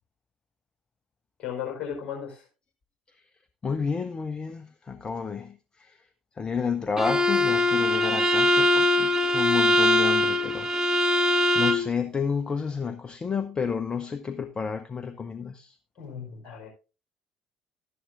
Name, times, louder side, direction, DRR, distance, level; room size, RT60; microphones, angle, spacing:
voice 1, 1.4-2.4 16.0-16.7, left 8 dB, 40° left, 4.7 m, -35 dB
voice 2, 3.6-6.0 6.4-11.1 11.5-15.8, left 6 dB, 25° left, 0.7 m, -31 dB
Bowed string instrument, 7.0-11.9, left 1 dB, 15° right, 0.9 m, -22 dB
12.5 x 11.0 x 2.6 m
figure-of-eight pair, 55°, 3 cm